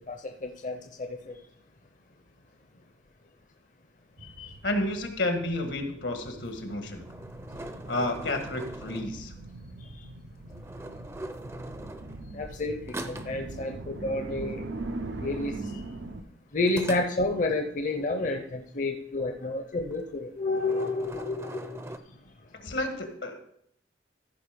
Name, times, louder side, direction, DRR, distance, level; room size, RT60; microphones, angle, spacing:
voice 1, 0.1-1.3 4.2-4.6 9.9-10.0 12.3-12.8 13.1-14.6 15.2-15.8 16.5-21.9, left 2 dB, 45° left, 4 dB, 0.6 m, -30 dB
sound 1, 4.2-16.2, right 2 dB, 90° right, 0.8 m, -41 dB
voice 2, 4.6-7.0 7.9-9.3 22.6-23.4, left 1 dB, 80° left, 5 dB, 1.6 m, -31 dB
sound 2, 6.7-9.5 10.5-12.6 12.9-13.5 16.7-17.6 19.9-20.2 20.5-22.0, right 1 dB, 15° right, 0.5 m, -41 dB
14.0 x 5.1 x 5.1 m, 0.71 s
head